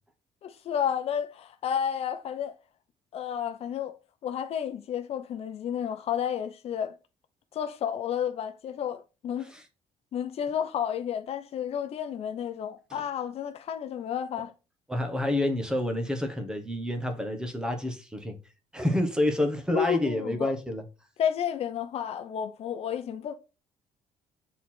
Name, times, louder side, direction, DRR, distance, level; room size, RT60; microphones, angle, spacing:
voice 1, 0.4-2.5 3.1-4.0 4.2-6.9 7.5-9.5 10.1-14.5 19.7-20.5 21.2-23.3, left 9 dB, 50° left, 0.7 m, -31 dB
voice 2, 14.9-18.4 18.7-20.8, left 1 dB, 5° right, 1.2 m, -28 dB
8.1 x 4.0 x 4.3 m
cardioid pair, 145°, 13 cm